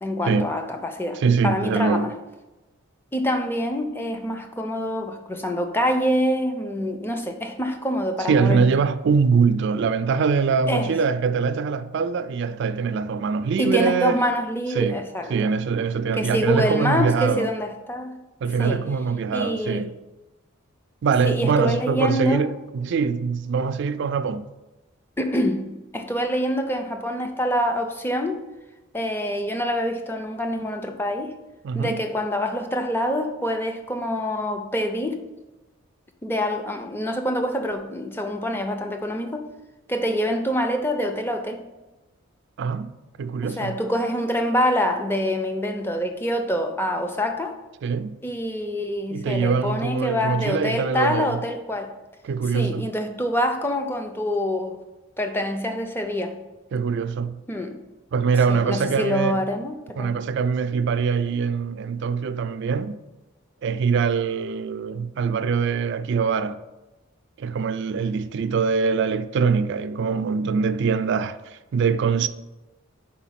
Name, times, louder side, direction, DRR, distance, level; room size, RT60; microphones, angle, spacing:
voice 1, 0.0-2.1 3.1-8.7 10.7-10.9 13.6-15.5 16.2-18.2 18.6-18.8 19.3-19.9 21.2-22.4 25.2-25.7 25.9-28.4 28.9-31.3 31.7-35.2 36.2-39.5 39.9-41.7 43.4-47.6 48.2-52.0 52.5-54.8 55.2-56.4 57.5-57.8 58.5-60.2, equal, 10° left, 0.5 m, -26 dB
voice 2, 1.2-2.1 8.3-14.2 14.7-15.0 15.3-17.5 18.4-19.9 21.0-24.5 31.6-32.0 42.6-42.9 43.2-43.8 47.8-48.2 49.1-51.4 52.2-52.9 56.7-57.4 58.1-59.4 60.0-63.0 63.6-66.6 67.4-72.3, right 5 dB, 55° right, 0.3 m, -23 dB
5.0 x 4.3 x 5.7 m
head